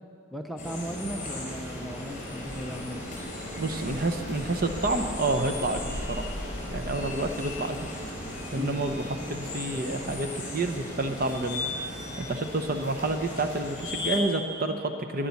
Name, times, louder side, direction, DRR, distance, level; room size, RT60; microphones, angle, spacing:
voice 1, 0.3-3.0 8.6-8.8, equal, ahead, 2 dB, 0.6 m, -36 dB
sound 1, 0.6-14.2, left 1 dB, 35° left, 4.3 m, -36 dB
voice 2, 3.6-6.3 6.7-7.9 8.5-9.0 9.3-10.3 10.5-11.7 12.2-15.3, right 2 dB, 40° right, 6 dB, 0.9 m, -29 dB
11.5 x 10.5 x 9.5 m, 2.4 s
head